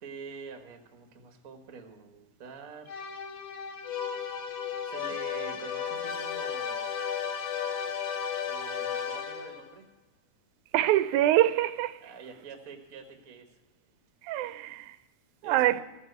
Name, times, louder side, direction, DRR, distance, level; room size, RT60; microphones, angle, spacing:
voice 1, 0.0-3.0 4.8-6.9 8.5-9.9 12.0-13.6 15.4-15.8, right 5 dB, 45° right, 1.2 m, -46 dB
sound 1, 2.9-9.7, left 7 dB, 70° left, 2.1 m, -34 dB
voice 2, 10.7-12.0 14.2-15.0 15.4-15.8, right 14 dB, 90° right, 2.0 m, -25 dB
14.5 x 7.5 x 7.9 m
omnidirectional pair, 3.4 m